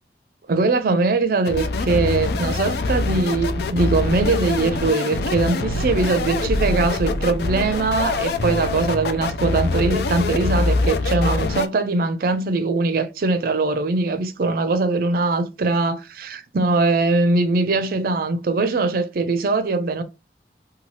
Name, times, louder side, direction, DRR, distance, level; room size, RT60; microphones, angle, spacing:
voice 1, 0.5-20.0, right 3 dB, 55° right, 0.4 m, -21 dB
sound 1, 1.4-11.7, left 3 dB, 60° left, 0.3 m, -24 dB
2.7 x 2.3 x 3.1 m
head